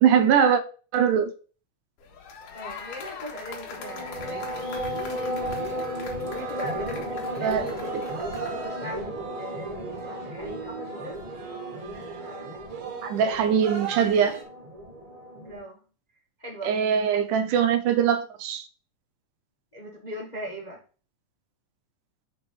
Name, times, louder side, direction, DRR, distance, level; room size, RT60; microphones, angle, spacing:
voice 1, 0.0-0.6 0.9-1.3 7.4-8.0 13.0-14.4 16.6-18.6, right 8 dB, 80° right, 2.3 m, -22 dB
sound 1, 2.0-8.7, left 5 dB, 85° left, 3.1 m, -42 dB
voice 2, 2.5-4.6 6.3-7.9 8.4-11.2 11.7-12.6 15.3-15.8 16.4-16.8 17.1-17.2 19.7-20.8, equal, 25° left, 0.8 m, -40 dB
sound 2, 3.7-15.6, equal, 30° right, 0.6 m, -35 dB
sound 3, 5.3-14.4, right 7 dB, 65° right, 2.8 m, -39 dB
6.1 x 4.7 x 5.3 m
omnidirectional pair, 3.6 m